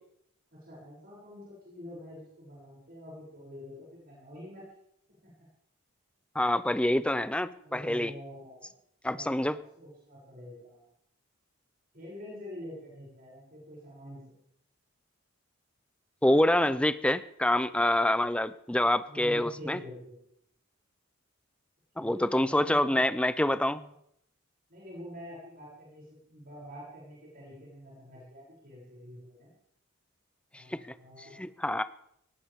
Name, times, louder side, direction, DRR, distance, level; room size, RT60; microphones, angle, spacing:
voice 1, 0.5-4.6 5.2-5.3 7.6-8.7 9.1-10.8 11.9-14.3 19.1-20.2 22.0-23.0 23.3-23.9 24.7-29.5 30.5-31.3, left 1 dB, 45° right, -6 dB, 7.2 m, -46 dB
voice 2, 6.4-8.1 9.0-9.6 16.2-19.8 22.0-23.8 30.5-30.8 31.4-31.8, left 1 dB, 5° left, 13 dB, 0.5 m, -26 dB
19.0 x 18.5 x 3.6 m, 0.73 s
head